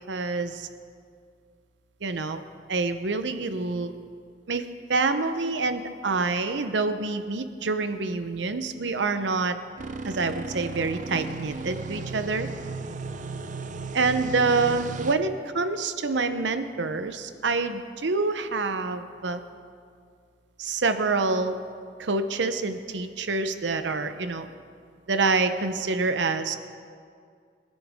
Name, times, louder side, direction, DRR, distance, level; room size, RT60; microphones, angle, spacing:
voice 1, 0.1-0.7 2.0-2.4 2.7-3.9 4.5-4.6 4.9-9.6 10.0-12.5 13.9-15.3 15.5-19.4 20.6-21.6 22.0-24.5 25.1-26.6, right 3 dB, 80° right, 9 dB, 0.8 m, -26 dB
sound 1, 9.8-15.1, right 3 dB, 45° right, 0.6 m, -35 dB
23.0 x 11.5 x 3.6 m, 2.2 s
head